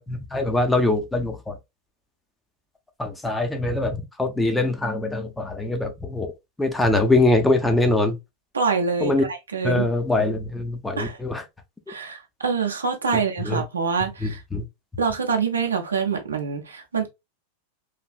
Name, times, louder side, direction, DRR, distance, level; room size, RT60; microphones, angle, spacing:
voice 1, 0.1-1.6 3.0-6.3 6.6-8.2 9.0-9.2 9.6-11.4 13.4-13.6 14.5-14.6, left 2 dB, 5° left, 0.5 m, -23 dB
voice 2, 8.5-9.8 11.0-11.2 11.9-14.4 15.0-17.1, right 5 dB, 75° right, 0.6 m, -25 dB
3.2 x 2.4 x 2.3 m
figure-of-eight pair, 90°, 0 cm